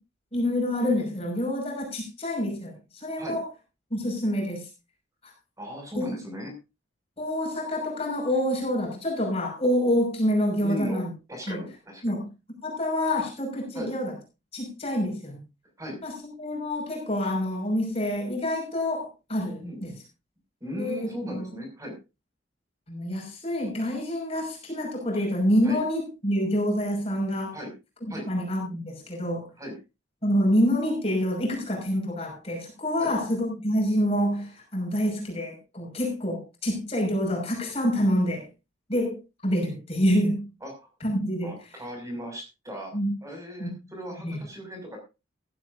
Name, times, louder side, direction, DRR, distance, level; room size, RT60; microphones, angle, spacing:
voice 1, 0.3-3.5 3.9-4.7 5.2-5.3 5.9-6.1 7.2-11.1 11.5-11.6 12.0-12.3 12.6-14.1 14.5-15.4 16.0-16.1 16.4-19.9 20.7-21.5 22.9-27.5 28.3-29.5 30.2-38.5 38.9-40.4 41.0-41.5 42.9-43.1 43.6-43.7 44.2-44.4, equal, 30° left, 0 dB, 5.8 m, -27 dB
voice 2, 5.6-6.6 10.6-11.0 11.3-12.2 13.7-13.9 15.8-16.0 19.6-19.8 20.6-22.0 25.6-25.8 27.5-27.7 28.1-28.3 29.6-29.8 33.0-33.1 40.6-40.9 41.4-42.9 43.2-45.0, equal, 15° right, 2 dB, 6.2 m, -37 dB
15.5 x 15.0 x 2.7 m, 0.28 s
head